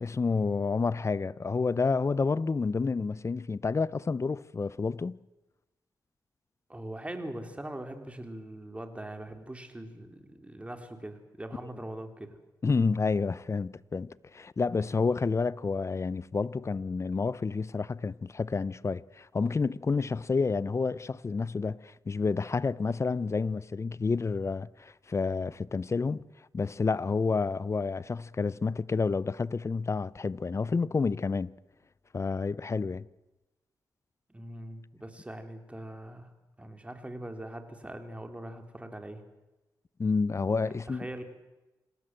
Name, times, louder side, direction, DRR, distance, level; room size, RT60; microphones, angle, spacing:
voice 1, 0.0-5.2 12.6-26.2 26.5-31.5 32.1-33.1 40.0-41.1, left 4 dB, 40° left, 0.8 m, -29 dB
voice 2, 6.7-12.4 34.3-36.3 36.6-39.2 40.9-41.3, right 1 dB, 15° right, 3.9 m, -41 dB
27.0 x 18.0 x 7.8 m
cardioid pair, 60°, 8 cm